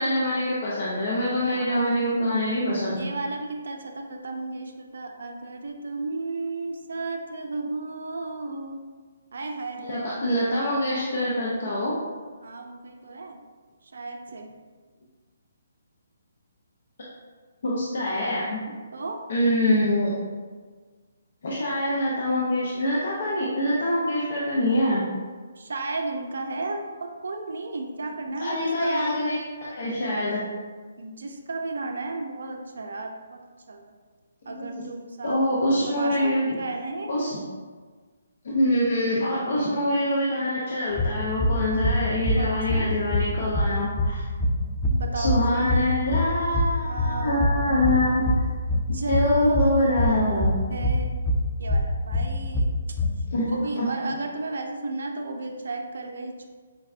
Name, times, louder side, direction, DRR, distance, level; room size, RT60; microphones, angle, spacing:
voice 1, 0.0-3.0 9.8-12.0 17.6-18.6 19.3-20.1 21.4-25.0 28.4-30.4 34.6-34.8 35.2-36.5 37.1-37.4 38.4-44.2 45.1-48.3 49.1-50.6 53.3-53.9, left 1 dB, 60° left, -5 dB, 0.5 m, -25 dB
voice 2, 1.5-1.9 2.9-8.8 9.3-10.2 12.4-13.4 13.8-14.5 18.9-19.2 25.6-29.2 31.0-33.4 33.7-33.9 34.4-37.1 39.3-39.8 42.4-42.9 44.9-45.7 46.8-48.3 48.9-50.1 50.5-51.1 51.6-52.7 53.5-56.5, right 3 dB, 70° right, 4 dB, 0.4 m, -34 dB
sound 1, 40.9-53.1, left 1 dB, ahead, 0.3 m, -25 dB
4.5 x 2.1 x 2.4 m, 1.5 s
hypercardioid pair, 145°, 0 cm